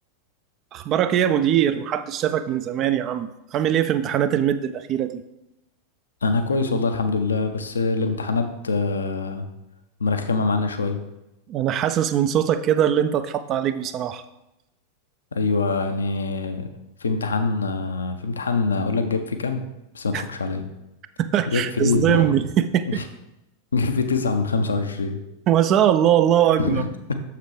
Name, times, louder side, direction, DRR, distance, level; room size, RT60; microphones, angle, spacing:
voice 1, 0.7-5.1 11.5-14.2 20.1-20.2 21.2-22.9 25.5-26.8, right 10 dB, 35° right, 11 dB, 0.4 m, -21 dB
voice 2, 6.2-9.5 10.0-11.0 15.3-16.7 17.0-19.6 19.9-20.6 21.5-22.3 22.9-23.0 23.7-25.2 26.6-27.1, left 4 dB, 70° left, 7 dB, 0.6 m, -24 dB
6.7 x 6.6 x 3.2 m, 0.91 s
figure-of-eight pair, 90°, 0 cm